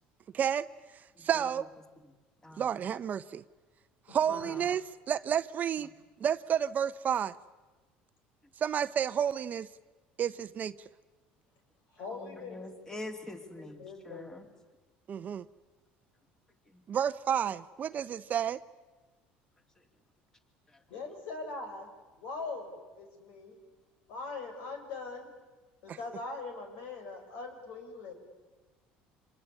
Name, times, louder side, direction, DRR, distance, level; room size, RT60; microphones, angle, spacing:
voice 1, 0.3-0.7 1.2-1.7 2.6-3.4 4.1-4.8 5.1-5.9 6.2-7.3 8.6-9.7 10.2-10.7 15.1-15.5 16.9-18.6 25.9-26.0, right 8 dB, 40° right, 0.8 m, -30 dB
voice 2, 1.2-1.6 2.0-2.1 2.4-2.8 4.3-4.6 12.1-14.5 16.7-16.8 20.7-20.8, left 1 dB, 15° left, 2.9 m, -45 dB
voice 3, 4.1-4.5 11.9-12.6 13.4-14.5 20.9-21.9 22.2-23.6 24.1-25.3 25.8-28.1, left 3 dB, 75° left, 5.8 m, -42 dB
26.0 x 21.0 x 9.8 m
supercardioid pair, 100°, 4 cm